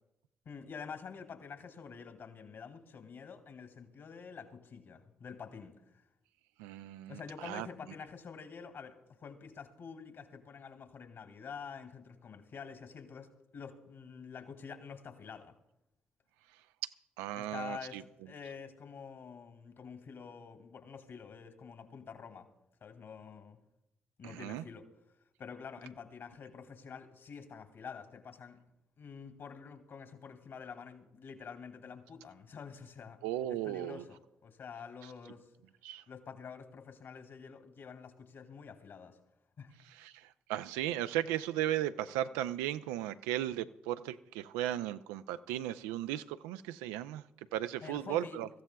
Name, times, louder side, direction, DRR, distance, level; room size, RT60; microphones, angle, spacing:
voice 1, 0.4-5.8 7.1-15.5 17.3-22.5 22.8-23.6 24.2-24.9 25.4-28.6 29.0-33.2 33.5-35.5 36.1-39.2 39.6-39.7 47.8-48.4, left 6 dB, 60° left, 2.4 m, -48 dB
voice 2, 6.6-7.7 16.8-16.9 17.2-18.0 24.2-24.7 33.2-34.0 35.8-36.0 39.9-47.2 47.5-48.5, right 13 dB, 85° right, 0.4 m, -36 dB
24.5 x 14.5 x 2.3 m
hypercardioid pair, 45°, 5 cm